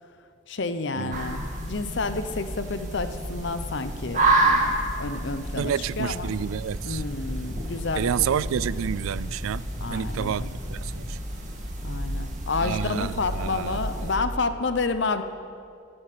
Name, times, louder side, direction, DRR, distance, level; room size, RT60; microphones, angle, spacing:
voice 1, 0.5-6.4 6.8-8.3 9.8-10.5 11.8-15.2, left 3 dB, 60° left, 10 dB, 0.8 m, -30 dB
sound 1, 1.1-14.2, right 2 dB, 35° right, 1.8 m, -30 dB
voice 2, 5.6-7.0 8.0-11.2 12.6-14.1, right 8 dB, 80° right, 19 dB, 0.3 m, -29 dB
sound 2, 5.7-11.2, equal, 15° left, 0.6 m, -42 dB
16.5 x 6.4 x 9.2 m, 2.4 s
head